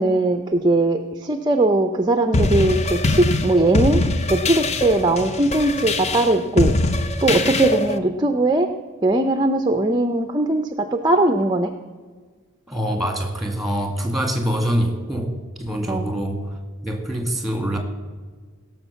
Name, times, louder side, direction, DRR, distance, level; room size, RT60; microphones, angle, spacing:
voice 1, 0.0-4.0 4.3-6.7 7.2-8.7 9.0-11.7 15.9-16.1, right 2 dB, 20° right, 6 dB, 0.6 m, -19 dB
sound 1, 2.3-8.0, left 2 dB, 30° left, 0.6 m, -22 dB
voice 2, 12.7-16.6 16.8-17.8, equal, ahead, 3 dB, 1.9 m, -25 dB
16.5 x 6.4 x 6.9 m, 1.5 s
head